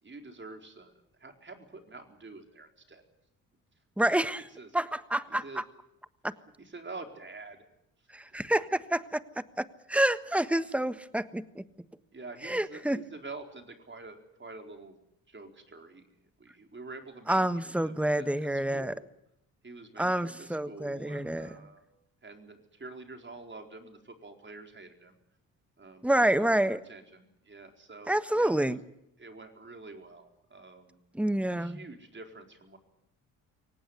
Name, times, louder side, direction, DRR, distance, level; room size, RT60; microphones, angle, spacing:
voice 1, 0.0-0.9 1.2-3.0 4.5-4.7 5.3-5.6 6.6-7.6 8.3-8.4 12.1-15.0 15.3-19.1 19.6-21.8 22.2-25.1 25.8-26.1 26.4-28.8 29.2-31.0 31.5-32.8, right 3 dB, 30° right, 5 dB, 4.4 m, -47 dB
voice 2, 4.0-4.4 4.7-5.6 6.2-6.3 8.1-11.6 12.4-13.0 17.3-18.9 20.0-21.5 26.0-26.8 28.1-28.8 31.1-31.8, right 1 dB, 5° right, 14 dB, 1.4 m, -28 dB
24.0 x 18.5 x 9.7 m, 0.81 s
hypercardioid pair, 50°, 37 cm